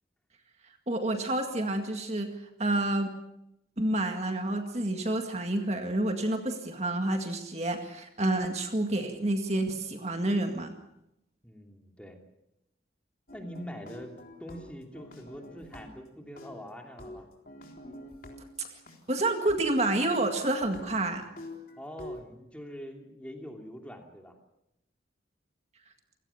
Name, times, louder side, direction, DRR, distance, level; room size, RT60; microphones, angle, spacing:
voice 1, 0.9-2.3 2.6-3.1 3.8-10.7 18.6-18.7 19.1-21.2, right 1 dB, 35° right, 5 dB, 2.0 m, -29 dB
voice 2, 11.4-12.2 13.3-14.1 14.4-17.3 21.8-24.3, equal, 5° left, 2 dB, 2.8 m, -44 dB
sound 1, 13.3-16.1 16.4-19.0 19.5-19.6 20.1-20.2 20.6-22.2, left 1 dB, 50° left, 3.9 m, -47 dB
29.0 x 17.5 x 7.2 m, 0.84 s
head